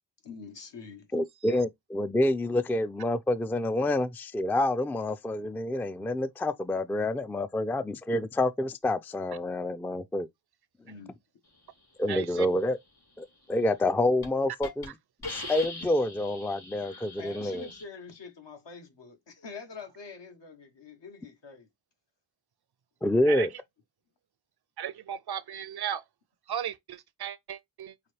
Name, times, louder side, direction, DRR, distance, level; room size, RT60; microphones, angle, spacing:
voice 1, 0.2-1.1 10.8-11.2 17.2-21.7, left 5 dB, 70° left, 1.4 m, -45 dB
voice 2, 1.1-10.3 12.0-12.8 13.2-14.9 15.3-17.7 23.0-23.5, left 1 dB, 5° left, 0.3 m, -28 dB
voice 3, 12.1-12.5 23.3-23.5 24.8-26.0 26.5-27.9, right 9 dB, 60° right, 0.6 m, -35 dB
Hiss, 13.6-13.8 14.2-14.3 14.6-14.9 15.2-17.8, left 2 dB, 55° left, 2.8 m, -41 dB
5.6 x 2.3 x 3.2 m
cardioid pair, 50°, 44 cm